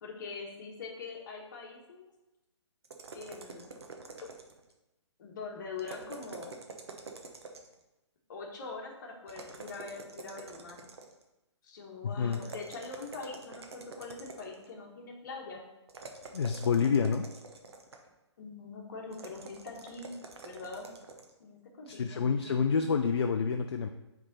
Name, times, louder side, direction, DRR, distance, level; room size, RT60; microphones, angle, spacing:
voice 1, 0.0-2.0 3.1-3.7 5.2-6.5 8.3-10.9 11.6-15.6 18.4-20.1 20.4-20.9 21.4-22.6, left 4 dB, 40° left, 1 dB, 1.3 m, -43 dB
sound 1, 2.8-4.7 5.8-7.8 9.3-11.3 12.3-14.7 15.9-18.1 19.1-21.3, right 4 dB, 60° right, 0.9 m, -47 dB
voice 2, 12.0-12.4 16.3-17.3 21.9-23.9, left 6 dB, 55° left, 6 dB, 0.4 m, -28 dB
7.2 x 3.5 x 4.0 m, 0.99 s
figure-of-eight pair, 135°, 15 cm